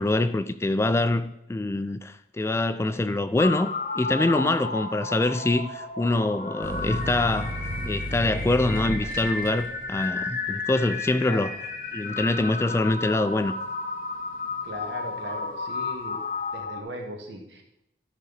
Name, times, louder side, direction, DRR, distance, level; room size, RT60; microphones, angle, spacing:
voice 1, 0.0-7.6 7.9-11.5 11.9-13.5, left 2 dB, 15° left, 0.3 m, -25 dB
sound 1, 3.4-16.8, left 3 dB, 50° left, 0.9 m, -33 dB
sound 2, 6.6-13.9 14.3-15.0, equal, 50° right, 1.4 m, -35 dB
voice 2, 11.2-11.6 14.6-16.2 16.5-17.6, equal, 80° right, 1.8 m, -38 dB
13.0 x 5.3 x 4.1 m
head